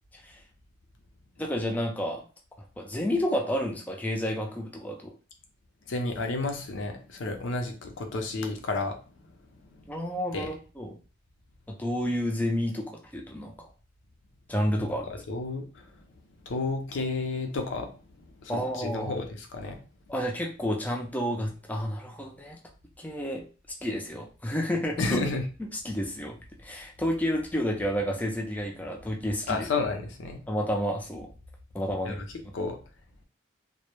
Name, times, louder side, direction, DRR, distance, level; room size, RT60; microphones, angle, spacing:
voice 1, 1.4-2.2 2.8-5.1 9.9-11.0 11.7-13.7 14.5-15.1 18.5-19.1 20.1-22.6 23.0-23.4 23.8-25.2 25.6-26.4 26.6-29.7 30.5-31.3 31.7-32.2, equal, 10° left, 0 dB, 0.3 m, -30 dB
voice 2, 5.9-9.0 9.7-9.8 10.3-10.5 14.8-14.9 15.3-15.9 16.4-17.9 18.4-19.8 25.0-25.4 29.5-30.4 32.0-32.2 32.5-32.8, left 3 dB, 80° left, 4 dB, 0.5 m, -31 dB
2.1 x 2.0 x 2.9 m, 0.36 s
head